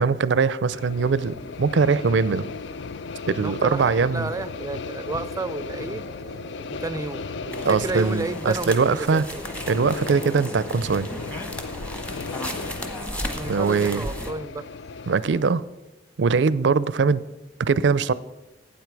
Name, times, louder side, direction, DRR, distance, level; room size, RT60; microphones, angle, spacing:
voice 1, 0.0-2.5 3.3-4.3 7.6-9.3 9.7-11.1 13.5-14.1 15.1-15.6 16.2-17.2 17.6-18.1, right 5 dB, 75° right, 18 dB, 0.5 m, -21 dB
sound 1, 0.7-15.4, left 4 dB, 70° left, 0.4 m, -36 dB
voice 2, 3.4-6.1 6.7-9.2 13.3-14.7, right 3 dB, 20° right, 15 dB, 0.4 m, -32 dB
sound 2, 3.5-11.4, right 1 dB, 55° left, 1.9 m, -44 dB
sound 3, 7.5-14.3, equal, 5° left, 1.1 m, -35 dB
12.5 x 8.9 x 4.7 m, 1.1 s
head